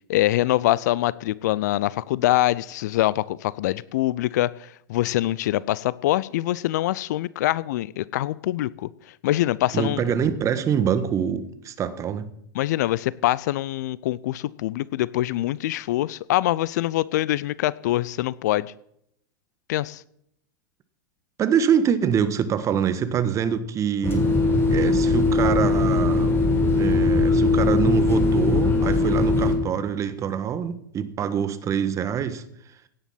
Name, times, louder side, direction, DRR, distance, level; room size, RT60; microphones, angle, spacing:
voice 1, 0.1-8.9 9.2-10.0 12.5-18.7 19.7-20.0, left 15 dB, 60° left, 0.6 m, -24 dB
voice 2, 9.7-12.3 21.4-24.3 24.7-26.3 26.8-32.4, right 8 dB, 30° right, 1.7 m, -25 dB
sound 1, 24.0-29.6, left 2 dB, 20° left, 4.3 m, -20 dB
17.0 x 9.9 x 5.9 m
figure-of-eight pair, 95°, 11 cm